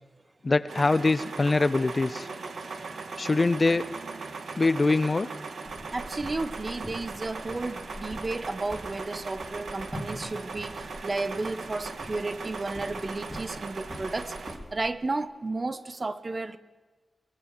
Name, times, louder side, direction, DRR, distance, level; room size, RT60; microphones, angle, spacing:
voice 1, 0.4-2.3 3.2-3.9 4.6-5.3, left 3 dB, 30° left, 0.6 m, -23 dB
sound 1, 0.7-14.6, right 4 dB, 75° right, 1.8 m, -39 dB
sound 2, 5.6-14.9, left 1 dB, 5° left, 3.9 m, -44 dB
voice 2, 5.9-14.3 14.7-16.6, right 2 dB, 35° right, 1.0 m, -33 dB
23.0 x 21.0 x 6.6 m
wide cardioid pair, 130°, 0 cm